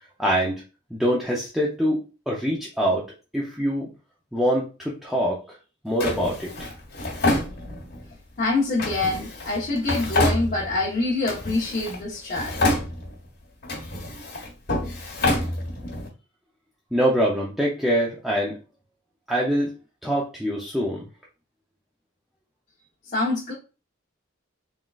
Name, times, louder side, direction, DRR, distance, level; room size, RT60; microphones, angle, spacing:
voice 1, 0.2-0.6 0.9-2.0 2.3-3.1 3.3-3.9 4.3-5.4 5.8-6.7 16.9-18.6 19.3-19.7 20.0-21.0, equal, ahead, 0.6 m, -24 dB
Drawer open or close, 6.0-8.1 8.8-10.9 11.2-12.0 12.3-13.3 13.6-16.1, left 2 dB, 55° left, 1.5 m, -27 dB
voice 2, 8.4-12.5 23.1-23.5, left 2 dB, 40° left, 1.1 m, -25 dB
3.8 x 3.7 x 2.4 m
head